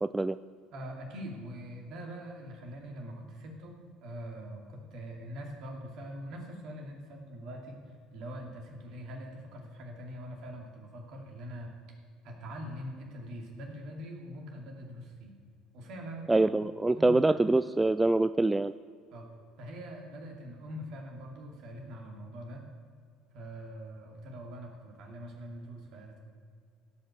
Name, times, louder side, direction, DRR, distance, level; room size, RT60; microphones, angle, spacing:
voice 1, 0.0-0.4 16.3-18.7, right 2 dB, 15° right, 13 dB, 0.3 m, -25 dB
voice 2, 0.7-11.7 12.2-15.3 15.7-16.3 16.9-17.2 19.1-19.3 19.6-22.6 23.3-26.2, equal, 60° right, 1 dB, 2.5 m, -43 dB
16.5 x 5.6 x 6.4 m, 2.1 s
hypercardioid pair, 65°, 0 cm